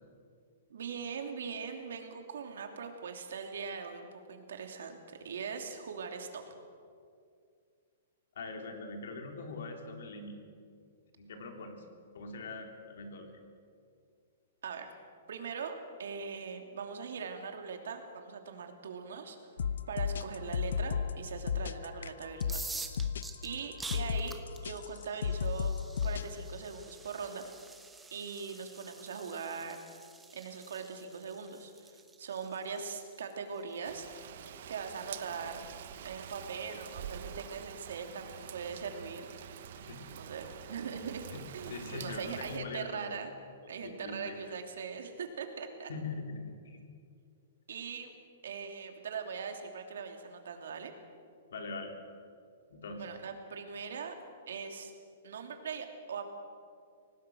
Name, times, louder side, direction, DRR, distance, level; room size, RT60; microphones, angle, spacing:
voice 1, 0.7-5.0 5.2-6.4 14.6-14.9 15.3-19.4 19.9-22.6 23.4-24.3 24.6-25.7 26.0-27.4 28.1-29.8 30.3-34.1 34.7-35.6 36.0-39.7 40.1-43.3 43.7-45.9 47.7-48.1 48.4-50.9 53.0-54.1 54.5-54.9 55.2-56.3, right 6 dB, 75° right, 5 dB, 2.9 m, -41 dB
voice 2, 8.4-10.4 11.2-11.8 12.1-13.3 39.8-40.1 41.3-41.4 41.7-43.0 43.6-44.4 45.9-46.8 51.5-51.9 52.7-53.0, left 3 dB, 70° left, 4 dB, 3.6 m, -42 dB
sound 1, 19.6-26.3, left 7 dB, 90° left, 0.8 m, -33 dB
sound 2, 22.3-34.1, right 3 dB, 5° right, 0.9 m, -48 dB
Rain, 33.8-42.6, right 9 dB, 50° right, 1.1 m, -47 dB
24.5 x 18.5 x 6.4 m, 2.3 s
hypercardioid pair, 175°, 0 cm